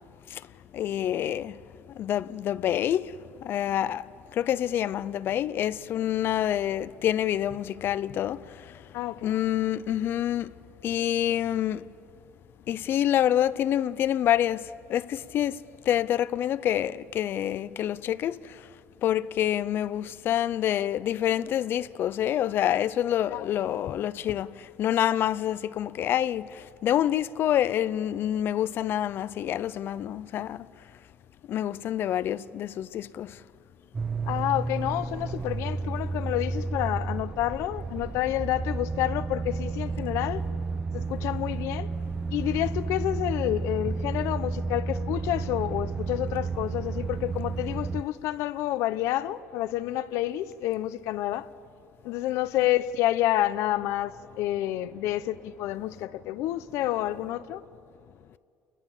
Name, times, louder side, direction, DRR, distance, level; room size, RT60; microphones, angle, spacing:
voice 1, 0.7-1.6 2.0-3.1 3.4-4.0 4.3-8.4 9.2-10.5 10.8-11.8 12.7-14.6 14.9-15.6 15.9-18.4 19.0-24.5 24.8-30.7 31.5-33.3, left 11 dB, 45° left, 0.5 m, -27 dB
voice 2, 8.9-9.3 23.3-23.7 34.3-40.4 40.9-41.9 42.3-51.5 52.0-57.6, left 14 dB, 70° left, 0.9 m, -29 dB
sound 1, 33.9-48.0, right 4 dB, 20° right, 0.6 m, -32 dB
29.5 x 21.0 x 7.3 m
cardioid pair, 145°, 5 cm